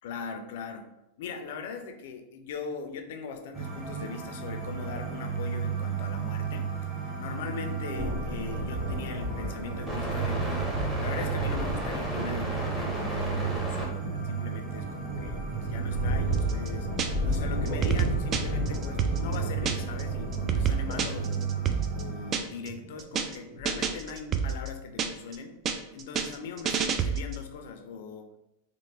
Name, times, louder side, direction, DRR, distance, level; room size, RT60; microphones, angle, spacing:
voice 1, 0.0-0.9 1.2-6.7 7.0-16.9 17.2-21.5 21.9-25.6 25.9-28.3, left 5 dB, 70° left, 6 dB, 0.4 m, -40 dB
sound 1, 3.5-22.3, right 5 dB, 10° right, 0.8 m, -33 dB
sound 2, 7.9-24.1, equal, 80° right, 1.0 m, -35 dB
sound 3, 16.3-17.4 17.7-20.0 20.3-22.7 23.0-23.4 23.7-25.4 25.7-27.5, right 6 dB, 30° right, 0.3 m, -29 dB
3.2 x 2.1 x 3.3 m, 0.90 s
supercardioid pair, 130°, 0 cm